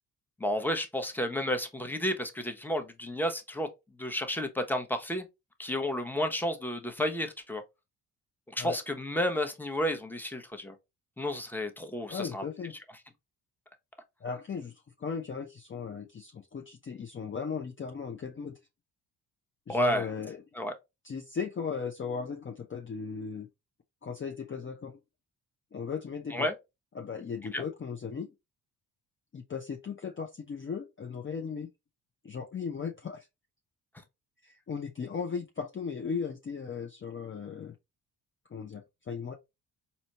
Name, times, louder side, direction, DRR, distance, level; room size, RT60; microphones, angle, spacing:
voice 1, 0.4-3.7 4.0-5.3 5.6-7.6 8.5-10.7 11.2-12.4 19.7-20.1 20.5-20.7 26.3-26.5 27.5-27.6, left 1 dB, 5° left, 0.9 m, -31 dB
voice 2, 12.1-12.7 14.2-18.6 19.7-20.4 21.0-23.5 24.0-25.0 25.7-26.5 27.0-28.3 29.3-31.7 32.2-33.3 34.4-37.7 38.5-39.3, left 6 dB, 25° left, 0.6 m, -37 dB
4.1 x 2.8 x 2.9 m
hypercardioid pair, 50°, 46 cm